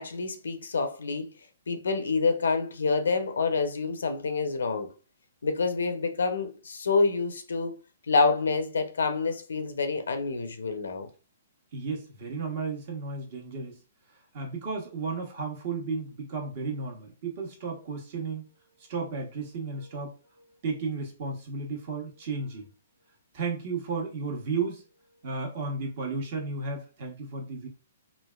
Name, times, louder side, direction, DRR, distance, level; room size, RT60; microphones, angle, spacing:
voice 1, 0.0-1.3 1.7-4.9 5.4-7.7 8.1-11.1, left 4 dB, 85° left, 0.6 m, -27 dB
voice 2, 11.7-13.8 14.3-22.7 23.3-24.8 25.2-27.7, right 4 dB, 50° right, 1.1 m, -34 dB
3.2 x 2.4 x 2.3 m
hypercardioid pair, 145°, 0 cm